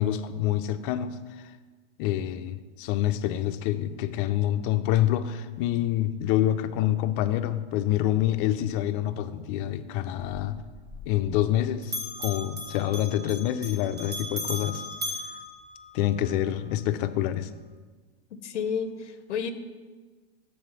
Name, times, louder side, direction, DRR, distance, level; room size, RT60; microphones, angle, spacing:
voice 1, 0.0-1.5 2.0-10.6 11.1-14.8 15.9-17.5, left 12 dB, 50° left, 0.6 m, -27 dB
Bell, 10.2-11.6 11.8-16.3, left 1 dB, 30° right, 1.6 m, -37 dB
voice 2, 18.3-19.5, left 6 dB, 90° left, 0.7 m, -31 dB
7.4 x 4.4 x 6.2 m
hypercardioid pair, 110°, 34 cm